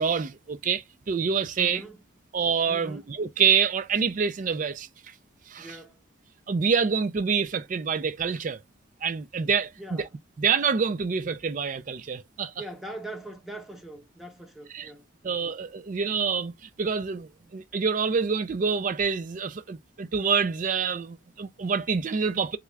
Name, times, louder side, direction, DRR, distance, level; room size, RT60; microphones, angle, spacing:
voice 1, 0.0-1.8 2.3-4.9 5.5-5.8 6.5-8.6 9.0-10.1 10.4-12.5 14.7-14.9 15.2-16.5 16.8-22.6, right 6 dB, 40° right, 0.4 m, -26 dB
voice 2, 1.6-2.0 2.7-3.1 5.6-6.0 9.8-10.1 12.6-15.6, right 1 dB, ahead, 0.6 m, -42 dB
3.6 x 2.3 x 3.2 m
head